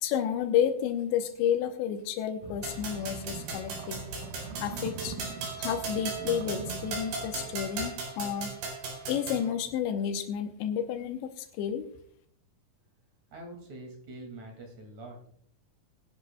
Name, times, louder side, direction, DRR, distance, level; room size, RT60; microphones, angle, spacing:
voice 1, 0.0-4.0 4.6-5.2 5.6-8.6 9.1-11.9, left 9 dB, 90° left, 6 dB, 3.1 m, -31 dB
sound 1, 2.4-8.1, right 4 dB, 70° right, 2.2 m, -43 dB
sound 2, 2.6-9.5, right 4 dB, 90° right, 6.2 m, -37 dB
voice 2, 13.3-15.2, right 2 dB, 45° right, 2 dB, 3.2 m, -44 dB
21.0 x 10.5 x 2.3 m, 0.64 s
omnidirectional pair, 5.0 m